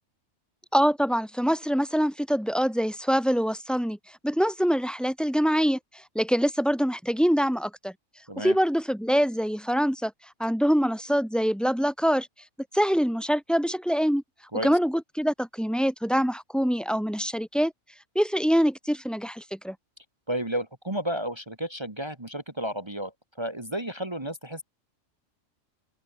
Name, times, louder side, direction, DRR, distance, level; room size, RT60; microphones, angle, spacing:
voice 1, 0.7-4.0 4.2-5.8 6.1-7.9 8.4-10.1 10.4-12.3 12.7-14.2 14.6-17.7 18.1-19.8, equal, ahead, 4.3 m, -24 dB
voice 2, 20.3-23.1 23.4-24.6, right 1 dB, 20° right, 2.0 m, -32 dB
open air
omnidirectional pair, 1.3 m